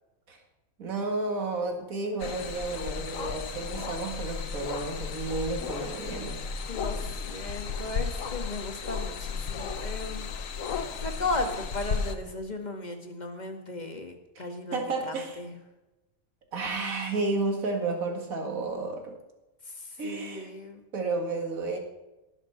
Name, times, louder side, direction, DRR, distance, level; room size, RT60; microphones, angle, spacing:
voice 1, 0.8-6.4 14.4-14.5 14.7-15.4 16.5-19.2 20.0-20.5 20.9-21.8, right 3 dB, 80° right, 3 dB, 2.3 m, -32 dB
sound 1, 2.2-12.1, left 5 dB, 70° left, 1.3 m, -34 dB
voice 2, 6.7-10.3 11.0-15.6 19.8-20.8, left 2 dB, 30° left, 5 dB, 1.6 m, -36 dB
18.0 x 6.5 x 5.7 m, 1.0 s
omnidirectional pair, 1.4 m